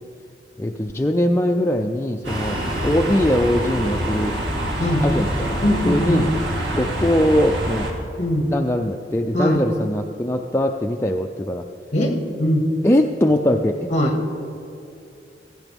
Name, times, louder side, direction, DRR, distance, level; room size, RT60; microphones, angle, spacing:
voice 1, 0.6-4.3 5.0-6.3 6.7-7.9 8.5-11.6 12.8-13.9, left 1 dB, 15° left, 2 dB, 0.4 m, -21 dB
sound 1, 2.2-7.9, right 1 dB, 75° right, 2.6 m, -25 dB
voice 2, 5.6-6.2 8.2-8.5 9.3-9.6 11.9-12.7 13.9-14.2, equal, 40° left, 3 dB, 1.8 m, -21 dB
17.0 x 15.5 x 3.5 m, 2.6 s
head